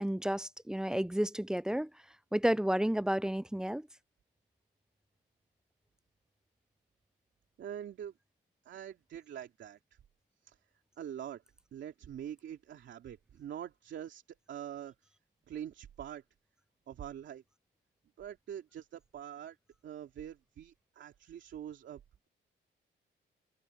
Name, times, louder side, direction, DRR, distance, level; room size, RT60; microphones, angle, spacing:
voice 1, 0.0-1.9 2.3-3.9, equal, 5° right, 0.3 m, -31 dB
voice 2, 7.6-8.1 8.6-9.8 10.4-10.6 11.0-11.4 11.7-14.9 15.5-16.2 16.9-17.4 18.2-19.6 19.8-22.0, right 10 dB, 65° right, 2.9 m, -44 dB
cardioid pair, 90°, 20 cm